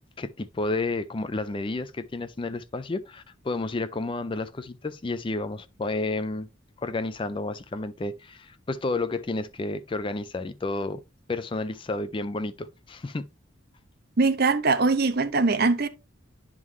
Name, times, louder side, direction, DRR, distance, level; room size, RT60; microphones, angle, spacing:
voice 1, 0.2-6.5 6.8-11.0 11.3-13.3, left 2 dB, 25° left, 0.4 m, -31 dB
voice 2, 14.2-15.9, right 3 dB, 50° right, 0.7 m, -22 dB
11.0 x 3.8 x 3.1 m
head